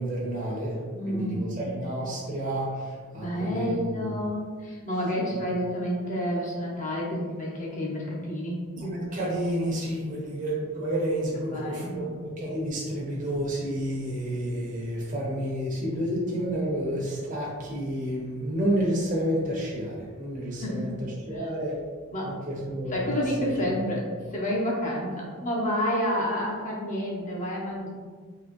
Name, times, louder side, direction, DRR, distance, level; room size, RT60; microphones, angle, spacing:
voice 1, 0.0-0.8 1.1-4.1 5.3-5.4 8.8-21.8 22.2-23.2 23.6-23.7, right 1 dB, 40° right, -5 dB, 1.0 m, -30 dB
voice 2, 0.9-1.5 3.1-8.6 11.4-12.1 20.6-20.9 21.3-21.5 22.1-22.4 22.9-27.9, equal, 35° left, -3 dB, 0.9 m, -29 dB
3.8 x 3.0 x 3.1 m, 1.6 s
head